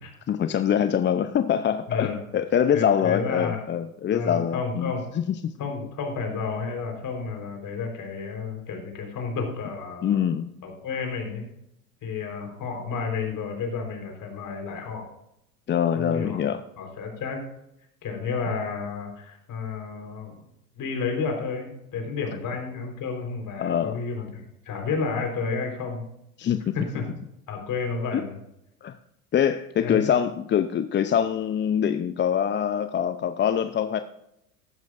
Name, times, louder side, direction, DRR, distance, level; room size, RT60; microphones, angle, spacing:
voice 1, 0.3-5.5 10.0-10.5 15.7-16.6 23.6-24.0 26.4-26.7 28.1-28.2 28.8-29.0 29.3-34.0, left 9 dB, 25° left, 10 dB, 0.6 m, -24 dB
voice 2, 1.9-2.2 2.7-3.6 4.1-5.0 5.6-10.2 10.6-11.4 12.0-15.1 15.9-16.4 16.8-17.4 18.0-20.3 20.8-26.1 26.7-27.1 27.5-28.4 29.8-30.1, left 4 dB, 45° left, 3 dB, 4.2 m, -31 dB
14.5 x 12.0 x 2.5 m, 0.79 s
hypercardioid pair, 75°, 45 cm